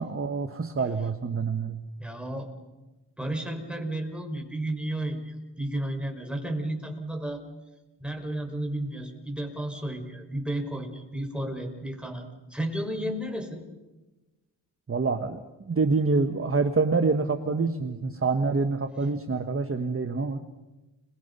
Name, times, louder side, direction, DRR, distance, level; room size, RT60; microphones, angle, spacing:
voice 1, 0.0-1.8 14.9-20.4, right 4 dB, 30° right, 7 dB, 1.5 m, -26 dB
voice 2, 2.0-2.5 3.2-7.4 8.0-13.6, right 1 dB, ahead, 3 dB, 5.7 m, -33 dB
30.0 x 23.0 x 5.6 m, 1.1 s
cardioid pair, 60°, 43 cm